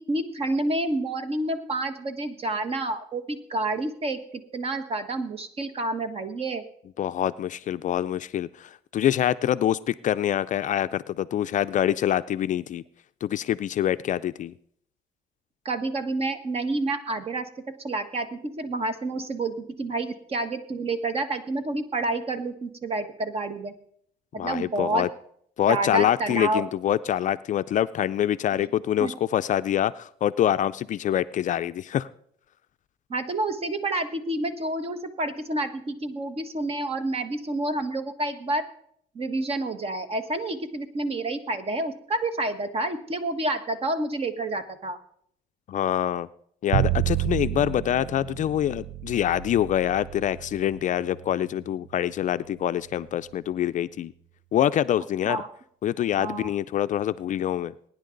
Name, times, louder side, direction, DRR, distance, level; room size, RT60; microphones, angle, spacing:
voice 1, 0.0-4.2 4.5-6.6 15.6-17.5 17.8-23.7 24.3-25.1 25.7-26.6 29.0-29.1 33.1-38.6 39.1-45.0 55.3-55.5 56.2-56.5, right 2 dB, 35° right, 9 dB, 1.5 m, -29 dB
voice 2, 7.0-12.8 13.2-14.5 24.4-25.1 25.6-32.1 45.7-46.3 46.6-54.1 54.5-55.4 55.8-57.7, left 11 dB, 50° left, 13 dB, 0.4 m, -25 dB
Bowed string instrument, 46.7-52.8, right 15 dB, 75° right, 0.5 m, -31 dB
21.5 x 10.0 x 3.9 m, 0.68 s
cardioid pair, 110°, 17 cm